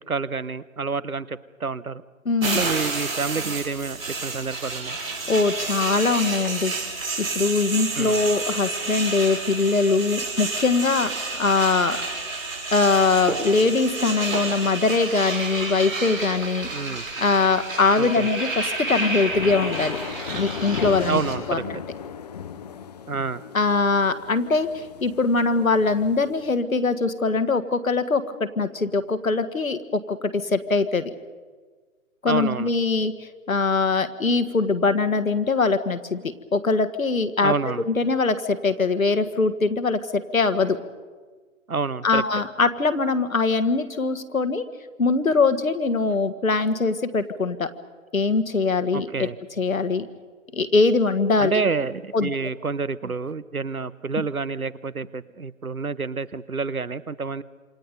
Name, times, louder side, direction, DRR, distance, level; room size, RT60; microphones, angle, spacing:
voice 1, 0.1-2.0 2.4-5.0 8.0-8.2 16.7-17.1 18.0-18.3 21.1-21.8 23.1-23.4 32.3-32.7 37.4-37.8 41.7-42.2 48.9-49.4 51.4-57.4, right 4 dB, 90° right, 19 dB, 0.9 m, -28 dB
voice 2, 2.2-2.6 5.3-6.7 7.2-12.0 12.7-16.7 17.2-20.0 20.3-21.2 21.5-21.6 23.5-31.1 32.2-37.5 37.8-40.8 42.0-44.6 45.0-47.7 48.1-49.3 49.6-50.0 50.5-51.6 52.1-52.3, left 3 dB, 75° left, 10 dB, 1.6 m, -22 dB
sound 1, 2.4-21.4, right 3 dB, 70° right, 5.7 m, -30 dB
sound 2, 18.5-26.5, left 8 dB, 30° left, 0.8 m, -36 dB
27.5 x 26.0 x 5.3 m, 1.4 s
figure-of-eight pair, 135°, 41 cm